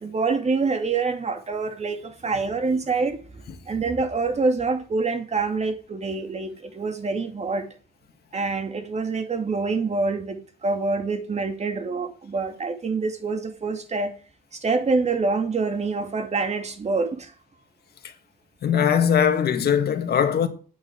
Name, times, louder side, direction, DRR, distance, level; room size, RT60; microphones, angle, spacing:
voice 1, 0.0-3.2 3.7-7.7 8.3-14.1 14.6-17.3, right 4 dB, 45° right, 2.4 m, -26 dB
voice 2, 18.6-20.5, left 8 dB, 80° left, 1.9 m, -20 dB
9.5 x 8.7 x 7.7 m
cardioid pair, 110°, 16 cm